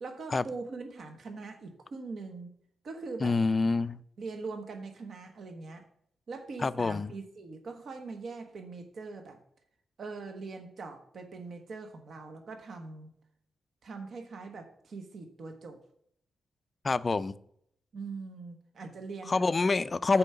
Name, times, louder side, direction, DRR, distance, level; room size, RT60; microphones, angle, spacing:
voice 1, 0.0-2.5 2.8-3.4 4.2-5.8 6.3-9.4 10.0-13.1 13.8-15.8 17.9-19.7 20.1-20.2, right 4 dB, 60° right, 6 dB, 1.1 m, -42 dB
voice 2, 3.2-4.0 6.6-7.1 16.8-17.3 19.3-20.2, left 3 dB, 30° left, 16 dB, 0.3 m, -26 dB
6.9 x 4.7 x 6.7 m, 0.70 s
cardioid pair, 105°, 0 cm